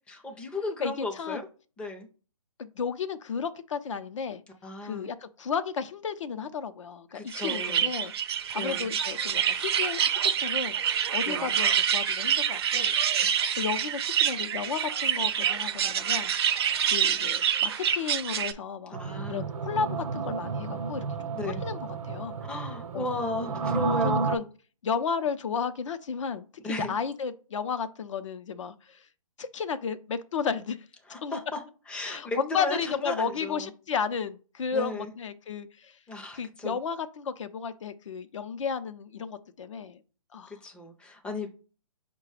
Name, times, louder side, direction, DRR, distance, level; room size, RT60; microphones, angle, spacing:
voice 1, 0.1-1.4 1.8-2.1 4.6-5.1 7.1-7.9 8.6-8.9 11.2-11.5 13.2-13.3 19.0-19.5 21.3-21.6 22.4-24.2 26.6-26.9 31.1-31.6 31.9-33.7 34.7-35.1 36.1-36.8 40.5-41.7, left 2 dB, 5° left, 0.5 m, -35 dB
voice 2, 0.8-1.4 2.6-4.4 4.8-8.1 8.5-10.8 11.1-12.9 13.5-16.3 16.8-19.0 19.3-21.1 21.6-22.4 22.9-23.1 24.0-24.5 24.8-26.5 26.8-29.1 29.4-30.8 31.2-31.4 32.1-36.0 36.3-40.0 40.3-40.6, left 6 dB, 60° left, 0.6 m, -33 dB
sound 1, 7.3-18.5, right 8 dB, 45° right, 0.5 m, -27 dB
sound 2, 18.9-24.4, right 4 dB, 80° right, 0.7 m, -31 dB
4.9 x 2.2 x 4.8 m
hypercardioid pair, 150°, 18 cm